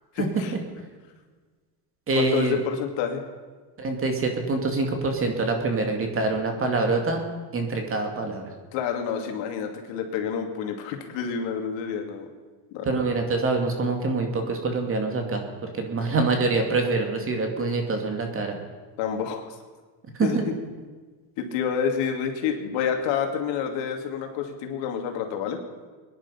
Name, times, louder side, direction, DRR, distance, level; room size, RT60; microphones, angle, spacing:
voice 1, 0.1-0.5 2.1-3.2 8.7-12.3 12.7-12.9 19.0-19.4 20.2-20.5 21.4-25.6, left 7 dB, 65° left, 4 dB, 2.6 m, -28 dB
voice 2, 2.1-2.6 3.8-7.2 7.5-8.5 12.8-18.6 20.2-20.4, right 3 dB, 25° right, 4 dB, 2.4 m, -25 dB
22.5 x 10.5 x 5.6 m, 1.4 s
supercardioid pair, 130°, 48 cm